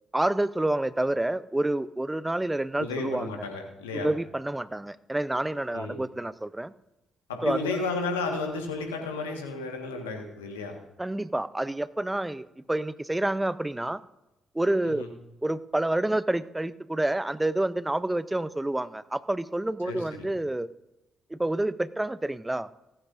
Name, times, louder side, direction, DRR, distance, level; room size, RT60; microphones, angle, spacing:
voice 1, 0.1-3.3 3.9-6.7 7.4-7.8 11.0-14.0 14.5-15.1 15.4-20.7 21.3-22.7, right 1 dB, 15° right, 16 dB, 0.6 m, -28 dB
voice 2, 2.8-4.1 5.7-6.0 7.3-10.8 14.8-15.1 19.8-20.3, left 3 dB, 85° left, 3 dB, 1.5 m, -33 dB
16.0 x 14.5 x 2.6 m, 0.94 s
hypercardioid pair, 45°, 0 cm